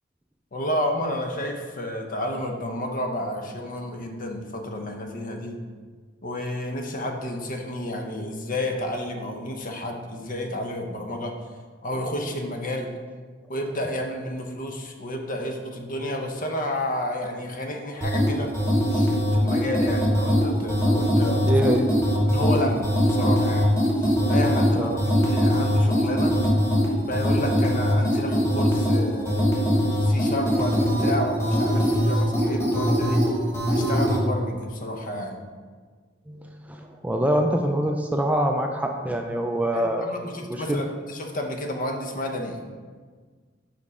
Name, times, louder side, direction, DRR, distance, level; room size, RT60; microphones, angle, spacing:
voice 1, 0.5-5.6 6.2-11.3 11.8-12.9 13.5-18.5 18.9-21.5 22.2-23.7 24.0-25.0 25.3-26.4 27.0-29.6 30.0-33.2 33.7-35.4 39.7-42.6, left 1 dB, 45° left, 3 dB, 0.8 m, -31 dB
sound 1, 18.0-34.2, equal, 15° left, 1.3 m, -22 dB
voice 2, 21.4-21.9 24.8-25.1 36.3-40.1 40.5-40.8, right 1 dB, 10° right, 3 dB, 0.3 m, -25 dB
5.3 x 5.2 x 4.8 m, 1.5 s
head